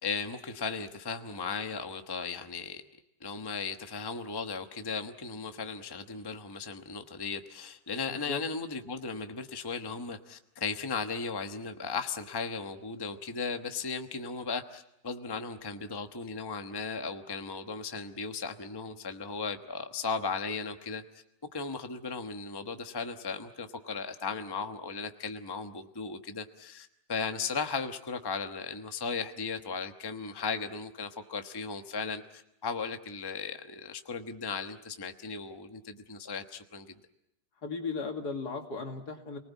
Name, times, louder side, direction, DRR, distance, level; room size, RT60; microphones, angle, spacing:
voice 1, 0.0-2.8 3.2-21.0 21.5-36.9, left 5 dB, 15° left, 1.0 m, -36 dB
voice 2, 8.1-8.4 37.6-39.4, left 4 dB, 65° left, 2.9 m, -36 dB
30.0 x 19.5 x 8.3 m
omnidirectional pair, 1.8 m